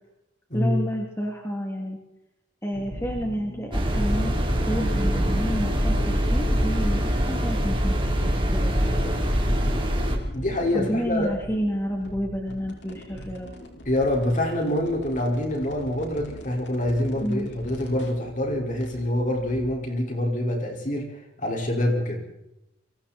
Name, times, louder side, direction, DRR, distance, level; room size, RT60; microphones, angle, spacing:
voice 1, 0.5-2.0 2.6-4.3 4.7-8.0 8.5-9.1 10.7-13.5 17.2-17.5, equal, 15° left, 0 dB, 3.1 m, -30 dB
sound 1, 2.7-19.7, equal, 65° left, 5.1 m, -38 dB
sound 2, 3.7-10.2, equal, 25° right, 3.7 m, -24 dB
voice 2, 10.3-11.3 13.9-21.1 21.4-22.4, left 1 dB, 40° left, 1 dB, 5.4 m, -26 dB
28.0 x 23.5 x 4.5 m, 0.89 s
head